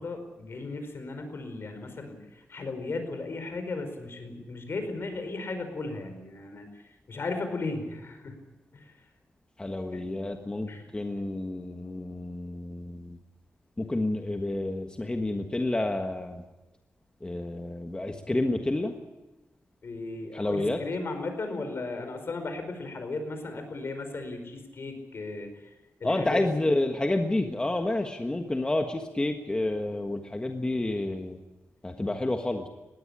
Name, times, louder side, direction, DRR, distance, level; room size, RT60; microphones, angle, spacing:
voice 1, 0.0-6.6 7.1-8.4 8.7-8.9 9.9-10.0 10.7-10.9 19.8-25.5 26.0-26.7 32.1-32.2, left 3 dB, 55° left, 7 dB, 5.0 m, -36 dB
voice 2, 9.6-10.7 10.9-12.6 13.9-16.3 17.2-18.9 20.4-20.8 26.0-31.3 31.8-32.6, left 2 dB, 20° left, 4 dB, 1.5 m, -29 dB
20.5 x 16.5 x 9.9 m, 1.1 s
wide cardioid pair, 115°, 5 cm